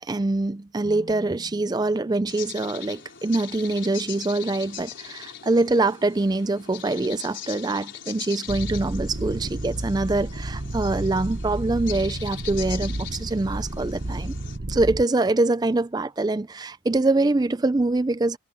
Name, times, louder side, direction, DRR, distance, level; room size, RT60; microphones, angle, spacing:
voice 1, 0.0-14.3 14.7-18.4, right 2 dB, 20° right, 0.4 m, -24 dB
sound 1, 0.8-4.1, equal, 25° left, 4.4 m, -50 dB
sound 2, 2.3-14.6, left 10 dB, 60° left, 5.1 m, -41 dB
sound 3, 8.5-15.0, right 1 dB, 45° right, 1.0 m, -31 dB
head